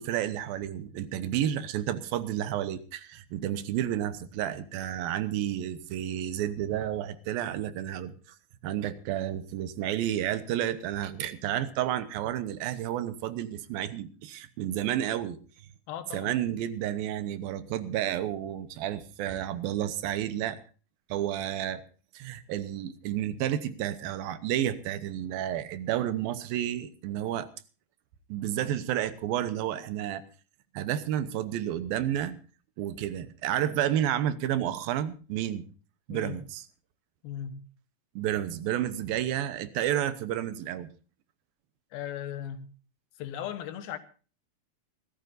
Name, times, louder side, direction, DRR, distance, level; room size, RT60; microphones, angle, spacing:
voice 1, 0.0-8.2 8.6-15.4 16.1-20.6 21.1-21.8 22.1-27.5 28.3-30.2 30.7-32.4 32.8-35.7 36.1-36.6 38.2-40.9, right 11 dB, 80° right, 2.7 m, -31 dB
voice 2, 15.9-16.3 36.1-36.4 37.2-37.6 41.9-42.7 43.2-44.0, left 10 dB, 80° left, 3.0 m, -37 dB
26.0 x 13.5 x 2.6 m
omnidirectional pair, 4.3 m